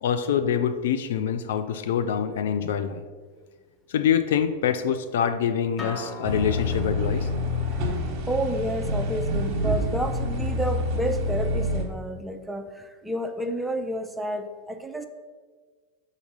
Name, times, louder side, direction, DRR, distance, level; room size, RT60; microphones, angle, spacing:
voice 1, 0.0-3.0 3.9-7.3, left 8 dB, 55° left, 9 dB, 0.4 m, -25 dB
Acoustic guitar, 5.8-11.0, left 2 dB, 15° left, 1.1 m, -42 dB
sound 1, 6.2-11.8, left 1 dB, 35° right, 1.1 m, -27 dB
voice 2, 8.3-15.1, right 1 dB, 5° right, 7 dB, 0.5 m, -30 dB
5.7 x 4.0 x 5.3 m, 1.5 s
figure-of-eight pair, 90°, 0 cm